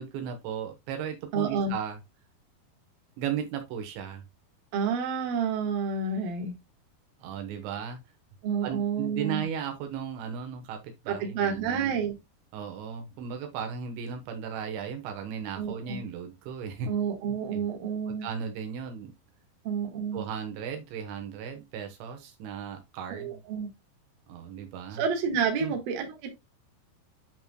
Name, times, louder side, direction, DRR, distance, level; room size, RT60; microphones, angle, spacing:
voice 1, 0.0-2.0 3.2-4.2 7.2-8.0 8.6-12.0 12.5-16.9 17.5-17.6 18.1-19.1 20.1-23.4 24.3-25.0 25.6-25.8, right 7 dB, 80° right, 3.4 m, -36 dB
voice 2, 1.3-1.8 4.7-6.6 8.4-9.4 11.1-12.2 15.6-16.0 16.9-18.3 19.6-20.2 23.1-23.7 24.9-26.3, right 6 dB, 60° right, 3.1 m, -29 dB
11.0 x 3.7 x 2.3 m
omnidirectional pair, 5.2 m